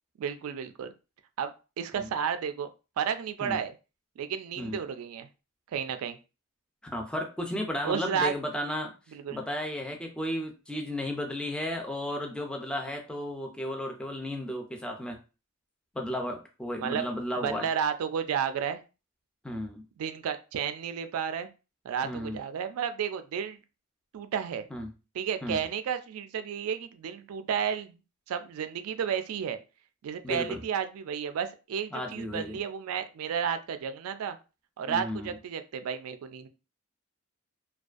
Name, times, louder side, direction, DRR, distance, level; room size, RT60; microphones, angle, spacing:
voice 1, 0.2-0.9 1.4-2.7 3.0-3.7 4.2-5.3 5.7-6.2 7.8-8.3 9.1-9.4 16.8-17.0 17.4-18.8 20.0-21.5 21.8-23.6 24.1-24.7 25.2-28.0 28.3-29.6 30.0-34.4 34.8-36.5, right 7 dB, 80° right, 10 dB, 0.3 m, -32 dB
voice 2, 6.8-8.9 9.3-15.2 15.9-17.7 19.4-19.9 22.0-22.4 24.7-24.9 25.4-25.7 30.2-30.6 31.9-32.6 34.9-35.4, left 1 dB, 5° left, 2 dB, 0.4 m, -34 dB
2.5 x 2.2 x 2.4 m, 0.31 s
head